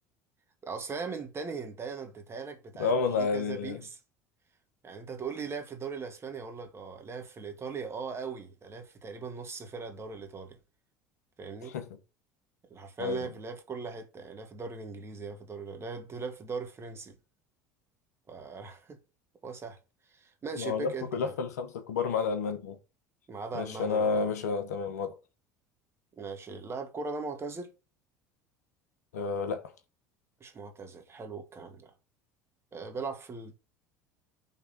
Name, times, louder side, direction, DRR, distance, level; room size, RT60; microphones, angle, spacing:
voice 1, 0.6-4.0 4.8-10.6 11.4-11.7 12.7-17.2 18.3-19.0 19.4-19.8 20.1-21.4 23.3-24.3 26.2-27.7 30.4-31.9 32.7-33.6, right 4 dB, 30° right, 1.9 m, -39 dB
voice 2, 2.8-3.8 11.6-11.9 13.0-13.3 20.6-22.8 23.5-25.2 29.1-29.7, left 5 dB, 80° left, 1.0 m, -30 dB
5.7 x 3.6 x 5.7 m
hypercardioid pair, 70°, 9 cm